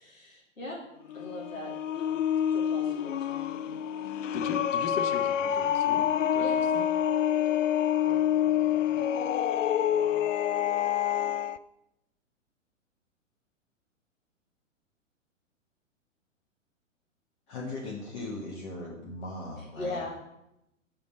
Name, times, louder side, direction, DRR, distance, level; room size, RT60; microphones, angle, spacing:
voice 1, 0.0-4.1 6.4-6.6 7.2-7.5 19.6-20.2, left 1 dB, 90° left, -4 dB, 2.9 m, -41 dB
sound 1, 1.0-11.6, left 10 dB, 70° left, 0.5 m, -27 dB
voice 2, 3.8-6.5 6.7-6.9 8.1-10.4, left 5 dB, 20° left, 7 dB, 0.6 m, -41 dB
voice 3, 17.5-20.0, left 2 dB, 35° left, -3 dB, 1.7 m, -38 dB
7.1 x 5.1 x 6.3 m, 0.85 s
figure-of-eight pair, 110°, 39 cm